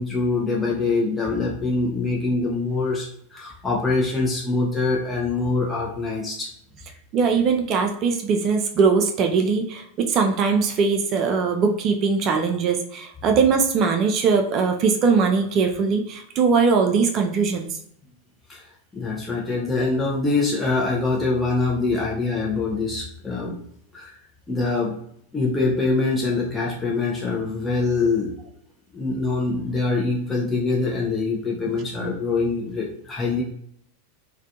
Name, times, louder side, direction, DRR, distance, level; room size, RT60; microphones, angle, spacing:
voice 1, 0.0-6.5 18.5-18.6 18.9-23.6 23.9-24.2 24.5-24.9 25.3-28.4 28.9-33.4, left 3 dB, 15° left, -3 dB, 0.5 m, -24 dB
voice 2, 7.1-17.7, right 5 dB, 40° right, 4 dB, 0.3 m, -21 dB
2.4 x 2.2 x 2.6 m, 0.69 s
figure-of-eight pair, 90°, 0 cm